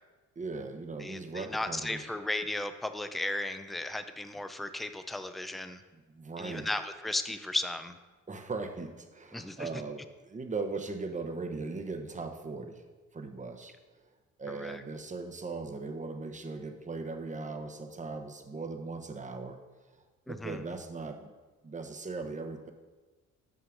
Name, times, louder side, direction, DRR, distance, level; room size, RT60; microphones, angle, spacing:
voice 1, 0.4-2.0 5.9-6.7 8.3-12.8 13.1-13.7 14.4-19.6 20.3-21.3 21.6-22.7, right 3 dB, 25° right, 6 dB, 0.9 m, -39 dB
voice 2, 1.0-5.8 6.4-8.0 9.3-9.7 14.5-14.8 20.3-20.6, left 2 dB, ahead, 9 dB, 0.4 m, -35 dB
5.9 x 5.6 x 6.4 m, 1.2 s
cardioid pair, 90°, 30 cm